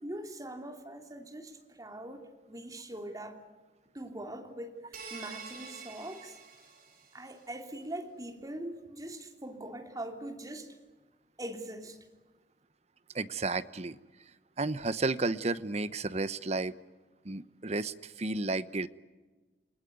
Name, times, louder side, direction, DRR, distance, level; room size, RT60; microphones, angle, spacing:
voice 1, 0.0-3.4 3.9-6.4 7.1-10.7 11.4-12.0, right 1 dB, 20° right, 3.0 m, -42 dB
sound 1, 4.9-7.4, right 5 dB, 55° right, 6.7 m, -47 dB
voice 2, 13.1-14.0 14.6-16.7 17.2-18.9, right 3 dB, 40° right, 0.9 m, -32 dB
29.0 x 19.5 x 9.4 m
head